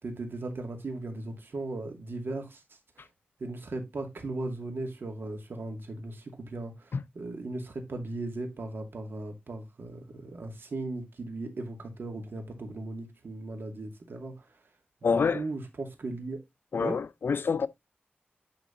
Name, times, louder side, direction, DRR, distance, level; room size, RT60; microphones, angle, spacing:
voice 1, 0.0-2.6 3.0-3.1 3.4-14.4 15.3-16.4 16.8-17.0, right 2 dB, 70° right, 2.5 m, -37 dB
voice 2, 15.0-15.4 16.7-17.7, left 5 dB, 75° left, 0.6 m, -27 dB
10.5 x 4.0 x 3.9 m
wide cardioid pair, 80°, 4 cm